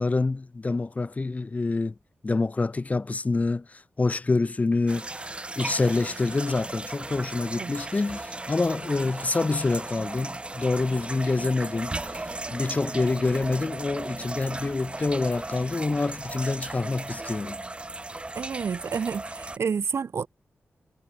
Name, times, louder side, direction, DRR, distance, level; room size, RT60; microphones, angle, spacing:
voice 1, 0.0-1.9 2.2-5.1 5.6-12.2 12.5-17.6, left 3 dB, 30° left, 1.5 m, -26 dB
sound 1, 4.9-19.6, right 2 dB, 25° right, 3.8 m, -36 dB
voice 2, 18.3-20.3, right 6 dB, 70° right, 1.6 m, -29 dB
wide cardioid pair, 100°, 5 cm